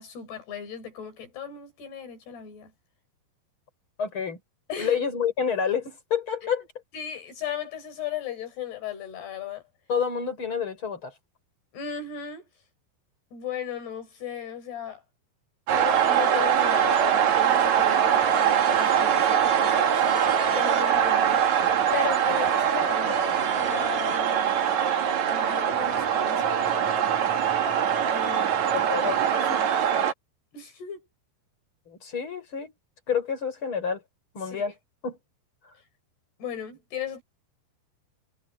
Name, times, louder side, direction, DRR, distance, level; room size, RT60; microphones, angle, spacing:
voice 1, 0.0-2.7 4.7-5.0 6.4-6.5 6.9-9.6 11.7-12.4 13.3-15.0 15.7-20.3 20.5-24.7 25.3-26.7 28.1-28.5 29.0-29.7 30.5-31.1 34.4-34.7 36.4-37.2, left 8 dB, 75° left, 7.0 m, -36 dB
voice 2, 4.0-4.4 4.8-6.6 9.9-11.1 28.3-28.5 28.7-29.2 29.5-29.6 31.9-32.7 33.1-34.0 34.3-34.7 35.0-35.2, left 7 dB, 30° left, 5.9 m, -28 dB
sound 1, 15.7-30.1, right 8 dB, 50° right, 2.8 m, -23 dB
omnidirectional pair, 4.8 m